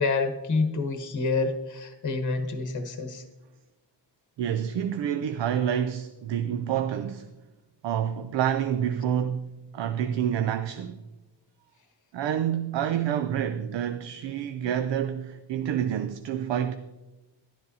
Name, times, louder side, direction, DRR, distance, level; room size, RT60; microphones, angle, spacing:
voice 1, 0.0-3.2, left 3 dB, 40° left, 1.0 m, -28 dB
voice 2, 4.4-7.3 7.8-9.5 9.7-11.0 12.1-16.8, right 9 dB, 75° right, 0.5 m, -28 dB
11.5 x 10.5 x 2.7 m
wide cardioid pair, 95°, 44 cm